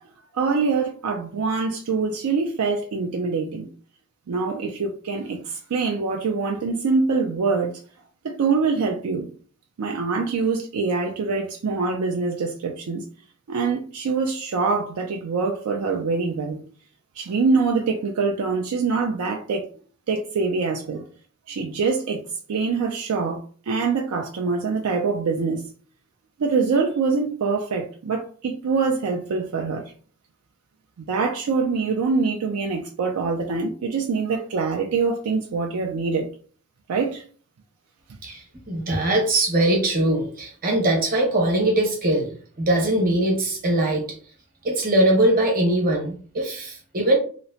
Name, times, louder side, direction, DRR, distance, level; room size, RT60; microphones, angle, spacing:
voice 1, 0.3-3.7 4.3-7.7 8.2-9.3 9.8-13.1 13.5-16.6 17.2-19.7 20.1-21.1 21.5-22.2 22.5-25.7 26.4-29.9 31.0-36.3 36.9-37.2, right 4 dB, 75° right, 0.4 m, -24 dB
voice 2, 38.2-42.3 42.6-44.0 44.6-47.2, right 1 dB, 40° right, 1.0 m, -21 dB
2.9 x 2.1 x 2.7 m
head